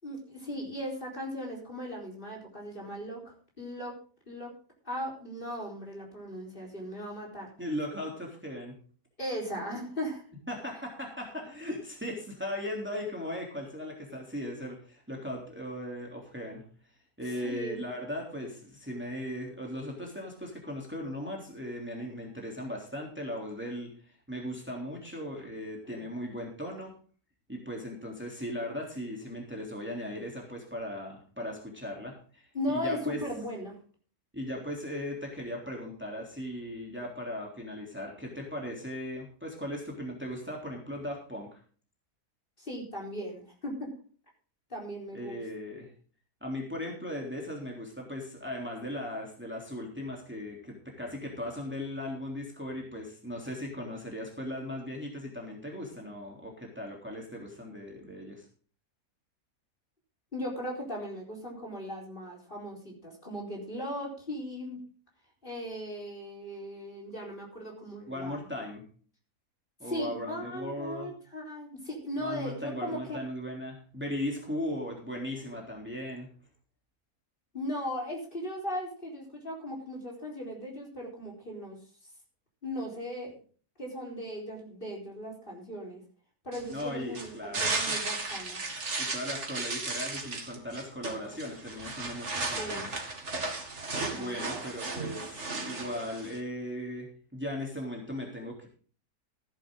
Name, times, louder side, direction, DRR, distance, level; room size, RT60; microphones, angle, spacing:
voice 1, 0.0-3.9 4.3-4.5 4.8-7.5 9.2-10.2 17.4-17.8 25.8-26.1 32.5-33.8 42.6-43.9 44.7-45.4 60.3-64.8 65.4-68.4 69.8-73.2 77.5-81.8 82.6-83.4 83.8-86.0 86.4-88.6 92.5-92.9 93.9-94.7, equal, 35° left, -1 dB, 4.5 m, -38 dB
voice 2, 7.6-8.7 10.5-16.6 17.2-26.9 27.5-33.2 34.3-41.5 45.1-45.9 46.4-58.4 68.1-68.8 69.8-71.1 72.2-76.3 86.7-88.0 89.0-92.9 94.1-97.1 97.3-98.7, left 1 dB, 5° right, -1 dB, 3.4 m, -38 dB
sound 1, 86.5-96.4, right 3 dB, 50° right, 2.4 m, -35 dB
15.0 x 11.0 x 3.8 m, 0.42 s
omnidirectional pair, 1.6 m